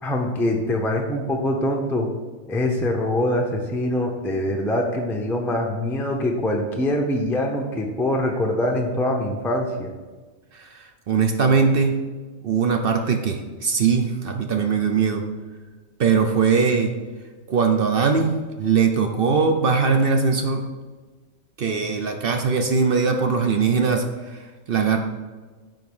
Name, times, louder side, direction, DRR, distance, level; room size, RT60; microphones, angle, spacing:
voice 1, 0.0-2.1 2.5-9.9, left 1 dB, ahead, 1 dB, 0.6 m, -24 dB
voice 2, 11.1-12.0 12.4-15.2 16.0-16.9 17.5-20.6 21.6-24.1 24.7-25.0, right 5 dB, 55° right, 5 dB, 0.7 m, -20 dB
9.4 x 3.9 x 5.4 m, 1.3 s
omnidirectional pair, 1.4 m